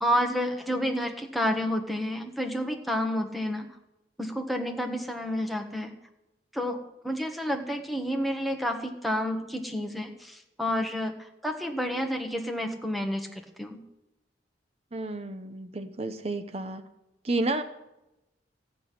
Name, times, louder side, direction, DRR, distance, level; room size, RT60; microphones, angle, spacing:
voice 1, 0.0-3.7 4.2-5.9 6.5-11.1 11.4-13.3 13.6-13.8, equal, ahead, 4 dB, 1.4 m, -30 dB
voice 2, 14.9-16.8 17.2-17.6, right 2 dB, 35° right, 9 dB, 0.8 m, -31 dB
14.5 x 6.1 x 10.0 m, 0.92 s
head